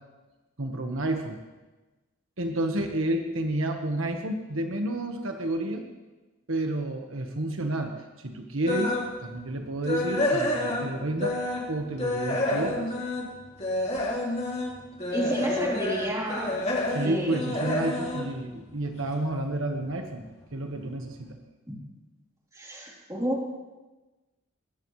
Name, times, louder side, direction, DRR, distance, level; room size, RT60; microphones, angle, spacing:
voice 1, 0.6-1.4 2.4-5.8 6.5-8.9 9.2-12.9 16.9-20.2 20.5-21.4, right 1 dB, 75° right, 3 dB, 1.4 m, -30 dB
sound 1, 8.6-9.1 9.5-11.7 12.0-19.2 19.6-19.8 20.3-20.4 20.8-20.9, left 1 dB, 30° left, 2.6 m, -29 dB
voice 2, 15.1-16.6 17.0-17.4 22.5-23.5, equal, 15° right, -4 dB, 3.5 m, -30 dB
22.0 x 18.0 x 3.3 m, 1.2 s
head